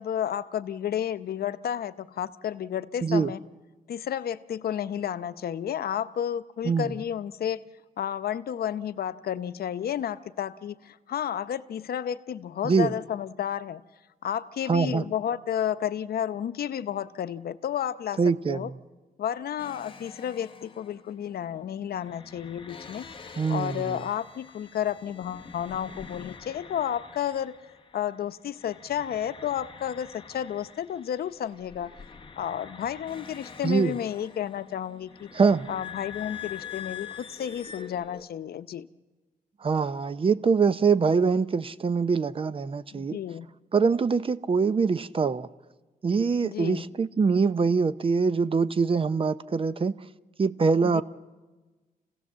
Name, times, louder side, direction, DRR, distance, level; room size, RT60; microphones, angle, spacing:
voice 1, 0.0-3.4 3.9-7.6 8.0-13.8 14.2-18.2 18.5-18.7 19.2-23.1 23.5-27.5 27.9-31.9 32.4-35.3 35.7-38.9 42.9-43.5 46.4-46.8 50.8-51.0, left 9 dB, 85° left, 0.7 m, -31 dB
voice 2, 14.7-15.0 18.2-18.7 23.4-24.0 33.6-33.9 35.3-35.7 39.6-43.2 43.7-45.5 46.0-49.9 50.4-51.0, right 5 dB, 35° right, 0.6 m, -24 dB
sound 1, 19.6-28.2 28.5-38.2, left 7 dB, 35° left, 1.1 m, -45 dB
28.0 x 16.5 x 7.3 m
wide cardioid pair, 125°, 16 cm